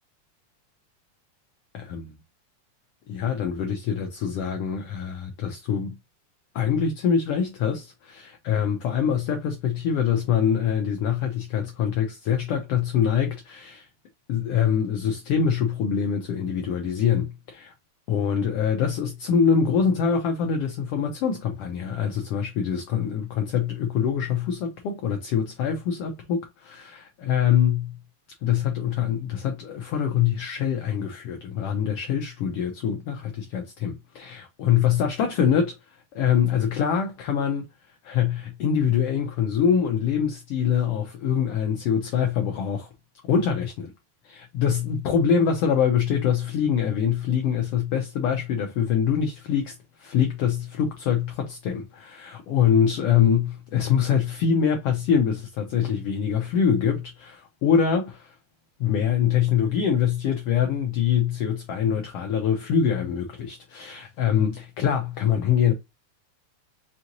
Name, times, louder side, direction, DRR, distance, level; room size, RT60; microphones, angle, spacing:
voice 1, 1.7-2.1 3.1-6.0 6.5-13.9 14.3-17.7 18.1-28.0 28.4-37.7 38.0-42.9 43.2-43.9 44.2-58.3 58.8-65.7, left 8 dB, 85° left, 1.3 m, -24 dB
5.4 x 2.9 x 2.5 m
omnidirectional pair, 3.4 m